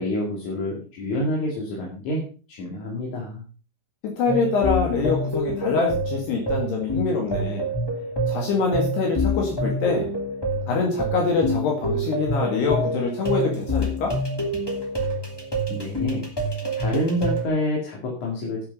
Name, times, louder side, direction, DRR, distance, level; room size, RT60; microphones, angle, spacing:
voice 1, 0.0-3.4 15.7-16.3 16.8-18.6, left 1 dB, 45° left, -2 dB, 3.1 m, -28 dB
voice 2, 4.0-7.6 8.3-10.1 10.7-14.2, left 4 dB, 60° left, 0 dB, 3.8 m, -24 dB
sound 1, 4.3-17.5, equal, 10° left, 1.0 m, -27 dB
11.0 x 8.2 x 5.4 m, 0.37 s
omnidirectional pair, 5.6 m